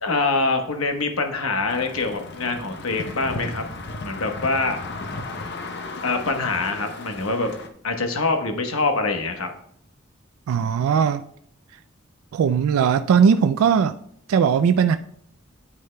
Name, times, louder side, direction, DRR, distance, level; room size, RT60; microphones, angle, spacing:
voice 1, 0.0-3.6 4.0-4.8 6.0-7.5 7.8-9.5, left 3 dB, 80° left, 1.0 m, -24 dB
sound 1, 1.7-7.7, left 3 dB, 50° left, 0.7 m, -35 dB
voice 2, 10.5-11.2 12.3-13.9 14.3-15.0, right 7 dB, 85° right, 0.3 m, -19 dB
9.5 x 8.2 x 2.2 m
head